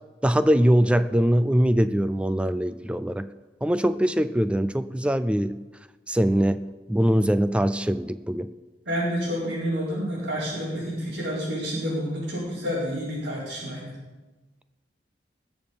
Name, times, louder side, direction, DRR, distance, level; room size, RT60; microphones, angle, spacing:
voice 1, 0.2-3.3 3.6-5.6 6.1-8.5, equal, 5° right, 12 dB, 0.4 m, -22 dB
voice 2, 8.9-13.9, equal, 85° right, -11 dB, 4.6 m, -29 dB
20.0 x 7.2 x 5.3 m, 1.2 s
head